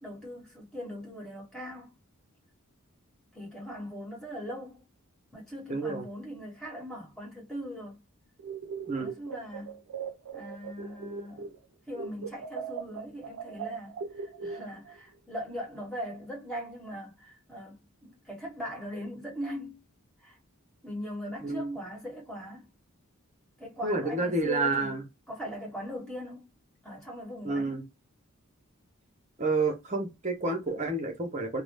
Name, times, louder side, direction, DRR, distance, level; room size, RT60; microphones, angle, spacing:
voice 1, 0.0-2.0 3.3-4.9 5.3-8.0 8.9-9.8 10.3-11.5 11.9-19.8 20.2-20.4 20.8-22.7 23.6-25.0 25.3-26.5 26.8-27.9, equal, 5° left, 1.3 m, -40 dB
voice 2, 5.7-6.0 8.9-9.1 21.4-21.8 23.8-25.0 27.4-27.8 29.4-31.6, right 3 dB, 35° right, 0.7 m, -29 dB
sound 1, 8.4-11.7 11.9-15.0, right 6 dB, 80° right, 0.3 m, -39 dB
2.6 x 2.0 x 3.3 m
head